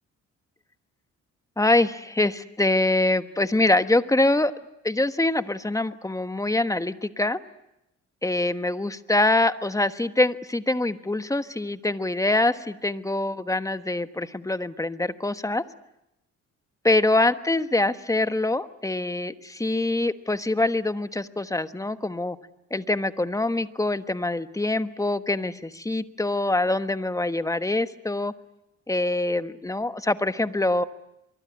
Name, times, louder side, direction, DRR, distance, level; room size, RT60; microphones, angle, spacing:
voice 1, 1.6-4.5 4.8-7.4 8.2-15.6 16.8-22.4 22.7-28.3 28.9-30.8, left 2 dB, 10° left, 11 dB, 1.3 m, -24 dB
25.0 x 23.5 x 9.6 m, 0.86 s
cardioid pair, 90°, 30 cm